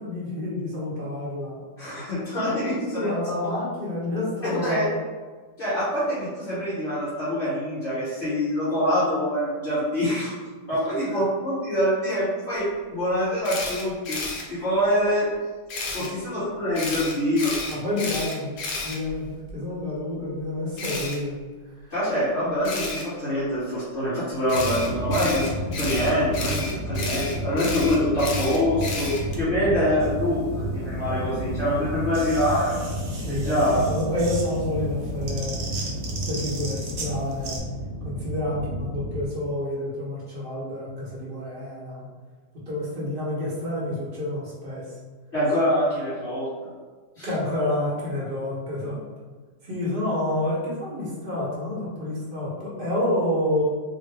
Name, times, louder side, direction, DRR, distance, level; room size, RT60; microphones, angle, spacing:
voice 1, 0.0-1.6 2.3-2.6 2.9-5.0 10.6-10.7 11.1-11.2 15.9-16.1 17.7-18.6 18.8-21.4 29.6-29.7 33.1-35.6 36.3-37.6 38.0-42.0 42.7-44.8 47.2-49.0 49.6-53.6, left 1 dB, 40° right, -6 dB, 0.8 m, -29 dB
voice 2, 1.8-2.7 3.0-3.1 4.4-4.9 5.6-10.3 10.7-14.2 14.5-15.3 15.9-17.5 21.9-32.8 33.3-33.8 45.3-46.5 47.2-47.3, equal, 30° left, -15 dB, 1.3 m, -25 dB
Camera, 13.4-14.4 15.7-16.1 16.8-19.5 20.8-21.2 22.6-23.0 24.5-29.4, left 3 dB, 75° left, 1.2 m, -32 dB
sound 1, 24.5-39.2, equal, 55° left, 0.9 m, -31 dB
sound 2, 30.0-37.6, right 3 dB, 65° right, 1.2 m, -39 dB
3.6 x 2.1 x 3.2 m, 1.4 s
omnidirectional pair, 1.8 m